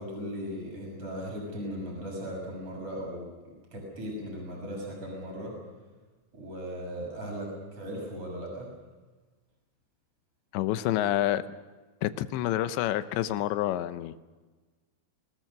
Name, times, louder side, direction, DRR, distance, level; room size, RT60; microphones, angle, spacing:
voice 1, 0.0-5.6 6.3-8.7, equal, 30° right, 0 dB, 7.5 m, -38 dB
voice 2, 10.5-11.4 12.0-14.1, left 13 dB, 80° left, 12 dB, 3.0 m, -28 dB
24.5 x 20.0 x 6.6 m, 1.3 s
omnidirectional pair, 5.2 m